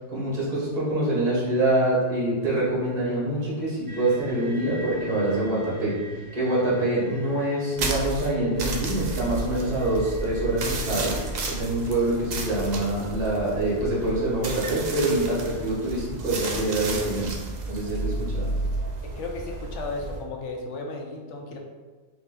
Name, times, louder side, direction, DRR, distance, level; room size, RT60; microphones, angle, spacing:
voice 1, 0.1-6.0 6.3-11.2 11.5-17.3 17.7-18.5, right 1 dB, 35° right, -7 dB, 1.3 m, -25 dB
sound 1, 3.9-11.4, right 3 dB, 80° right, 1.1 m, -43 dB
sound 2, 7.8-20.2, right 2 dB, 55° right, 0.5 m, -32 dB
voice 2, 19.0-21.6, left 3 dB, 80° left, 1 dB, 1.0 m, -34 dB
3.1 x 2.9 x 3.7 m, 1.4 s
omnidirectional pair, 1.3 m